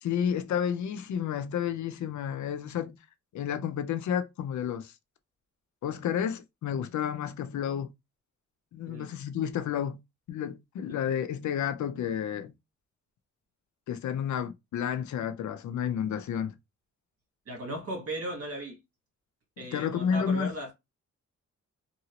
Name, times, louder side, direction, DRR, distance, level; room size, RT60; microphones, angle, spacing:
voice 1, 0.0-3.0 3.3-4.9 5.8-7.9 8.7-10.0 10.3-12.5 13.9-16.5 19.7-20.5, left 8 dB, 75° left, 0.5 m, -31 dB
voice 2, 17.5-18.8 19.6-20.7, right 1 dB, 50° right, 1.4 m, -37 dB
2.8 x 2.7 x 2.8 m
wide cardioid pair, 160°, 29 cm